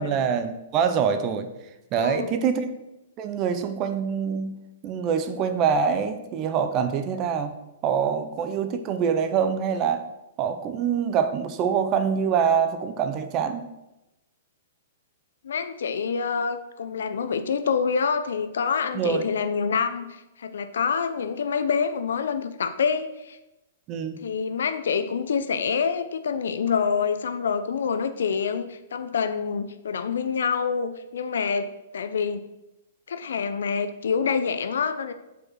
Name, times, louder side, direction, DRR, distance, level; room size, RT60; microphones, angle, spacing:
voice 1, 0.0-1.5 1.9-2.7 3.2-4.6 4.8-7.5 7.8-10.0 10.4-13.7 18.9-19.2 23.9-24.2, right 7 dB, 30° right, 9 dB, 0.6 m, -25 dB
voice 2, 2.0-2.4 15.4-23.4 24.2-31.7 31.9-32.4 33.1-35.1, left 6 dB, 80° left, 10 dB, 0.5 m, -26 dB
5.0 x 4.7 x 6.2 m, 0.95 s
hypercardioid pair, 150°, 0 cm